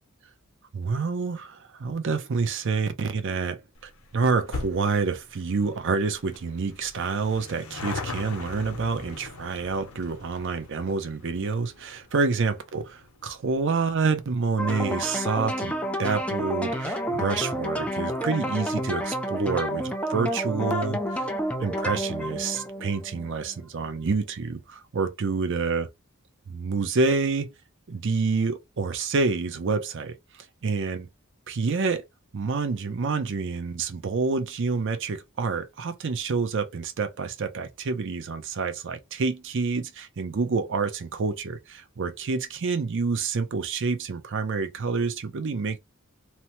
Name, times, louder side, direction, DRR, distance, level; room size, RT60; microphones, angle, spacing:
voice 1, 0.7-21.3 21.6-25.9 26.5-27.5 27.9-30.2 30.6-31.1 31.5-32.0 32.3-45.8, right 4 dB, 55° right, 0.5 m, -28 dB
sound 1, 3.8-16.5 16.8-16.9 17.8-17.9 18.1-18.2 18.4-18.5, left 4 dB, 75° left, 0.7 m, -41 dB
sound 2, 14.6-23.6, equal, 5° left, 0.4 m, -30 dB
2.8 x 2.1 x 2.9 m
head